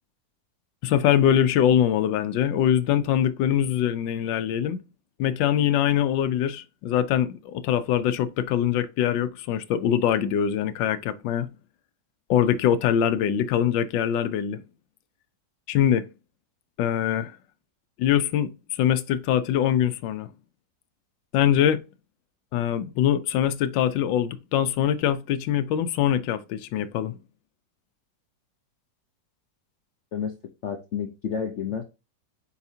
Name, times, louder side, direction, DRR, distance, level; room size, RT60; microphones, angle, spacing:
voice 1, 0.8-4.8 5.2-11.5 12.3-14.6 15.7-16.1 16.8-17.3 18.0-20.3 21.3-21.8 22.5-27.1, left 10 dB, 90° left, 1.3 m, -23 dB
voice 2, 30.6-31.8, left 7 dB, 65° left, 0.7 m, -30 dB
6.9 x 4.8 x 2.8 m
omnidirectional pair, 2.0 m